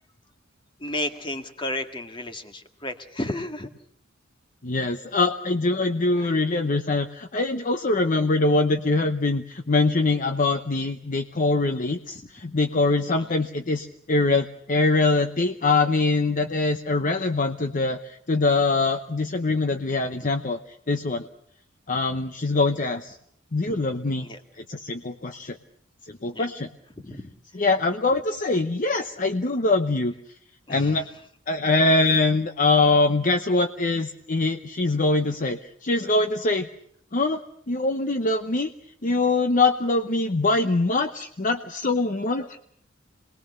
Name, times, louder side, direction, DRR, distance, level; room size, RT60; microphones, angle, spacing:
voice 1, 0.8-3.7 6.2-6.3 13.1-13.3 23.7-23.8 24.2-24.4 26.3-26.5 27.0-27.2 30.7-31.0, left 1 dB, 25° left, 6 dB, 1.9 m, -33 dB
voice 2, 4.6-20.6 20.9-21.3 21.9-23.2 23.5-24.3 24.6-25.6 26.0-26.7 27.5-30.1 30.7-31.0 31.5-36.7 37.1-37.4 37.7-38.7 39.0-42.6, left 3 dB, 40° left, 7 dB, 0.9 m, -23 dB
27.5 x 20.5 x 6.8 m, 0.68 s
head